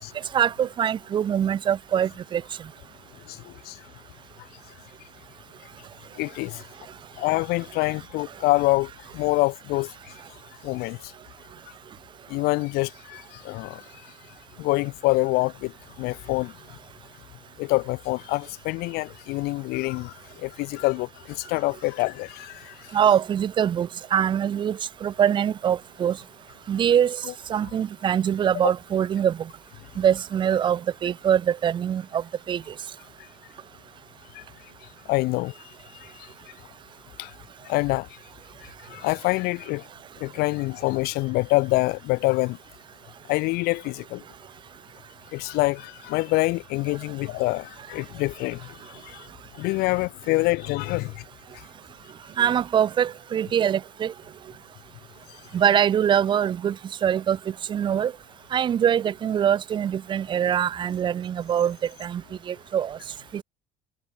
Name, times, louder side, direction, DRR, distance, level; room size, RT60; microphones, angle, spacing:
voice 1, 0.3-2.4 22.9-26.2 26.7-27.2 27.5-29.4 30.0-32.6 52.4-54.1 55.5-56.7 57.0-57.4 57.7-58.1 58.5-62.2 62.5-63.0 63.3-63.4, right 9 dB, 25° right, 1.7 m, -23 dB
voice 2, 3.3-3.8 6.2-6.6 7.2-9.9 10.6-11.1 12.3-13.9 14.6-16.5 17.6-22.8 27.2-27.3 34.3-34.4 35.1-35.5 36.0-36.3 37.2-37.3 37.7-38.1 38.9-39.8 40.2-42.6 43.3-44.2 45.3-48.6 48.9-49.3 49.6-51.2, left 23 dB, 60° left, 1.9 m, -26 dB
cardioid pair, 180°, 18 cm